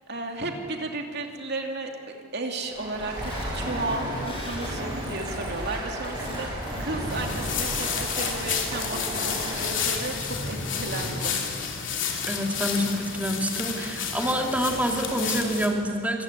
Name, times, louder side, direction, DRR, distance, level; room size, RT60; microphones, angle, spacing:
voice 1, 0.0-1.9 2.3-6.5 6.8-11.4, right 2 dB, 55° right, 3 dB, 2.7 m, -33 dB
Stream, 2.6-10.2, right 1 dB, 25° right, 8.0 m, -34 dB
sound 1, 3.2-7.7 8.3-8.5 9.1-9.3 10.0-11.3, equal, 25° left, 7.9 m, -36 dB
sound 2, 7.1-15.7, left 7 dB, 60° left, 3.1 m, -31 dB
voice 2, 12.3-16.2, equal, 5° right, 1 dB, 2.4 m, -27 dB
26.0 x 15.0 x 9.9 m, 2.3 s
head